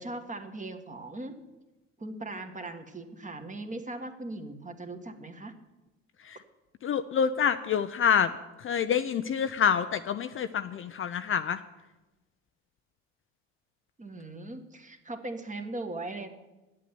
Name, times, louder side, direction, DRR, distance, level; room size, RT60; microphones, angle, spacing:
voice 1, 0.0-1.4 2.0-5.5 14.0-16.3, right 2 dB, 20° right, 6 dB, 1.7 m, -39 dB
voice 2, 6.8-8.3 8.6-11.6, left 7 dB, 35° left, 10 dB, 0.6 m, -27 dB
8.5 x 8.4 x 9.4 m, 1.1 s
hypercardioid pair, 60°, 36 cm